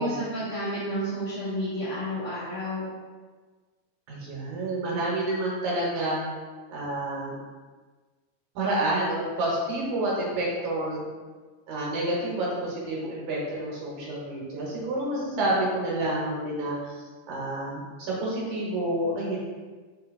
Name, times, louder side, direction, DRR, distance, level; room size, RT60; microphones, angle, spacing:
voice 1, 0.0-2.9, equal, 75° left, -10 dB, 1.2 m, -31 dB
voice 2, 4.1-6.3 6.7-7.4 8.6-11.1 11.7-19.4, right 1 dB, 70° right, -5 dB, 2.2 m, -29 dB
5.3 x 2.7 x 2.5 m, 1.4 s
omnidirectional pair, 3.6 m